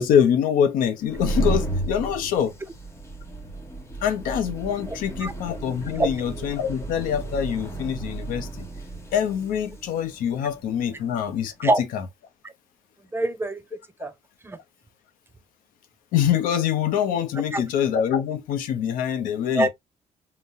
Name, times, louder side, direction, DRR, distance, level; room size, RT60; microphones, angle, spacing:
voice 1, 0.0-2.5 4.0-8.6 9.1-12.0 16.1-19.7, left 8 dB, 85° left, 0.7 m, -24 dB
sound 1, 0.9-11.4, right 2 dB, 20° left, 0.9 m, -33 dB
voice 2, 13.1-14.1 14.4-14.6 17.5-17.6 19.5-19.7, right 1 dB, 15° right, 0.5 m, -24 dB
3.9 x 2.1 x 2.5 m
cardioid pair, 90°, 14 cm